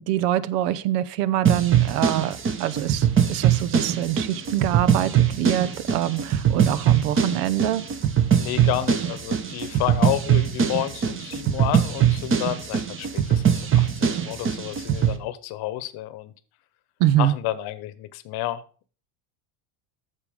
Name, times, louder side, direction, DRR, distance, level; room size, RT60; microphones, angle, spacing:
voice 1, 0.0-7.8 17.0-17.3, right 12 dB, 85° right, 17 dB, 0.9 m, -25 dB
sound 1, 1.4-15.2, right 8 dB, 25° right, 1.0 m, -22 dB
voice 2, 8.4-16.3 17.2-18.6, left 14 dB, 55° left, 16 dB, 1.0 m, -30 dB
8.7 x 6.7 x 4.9 m, 0.40 s
supercardioid pair, 130°, 46 cm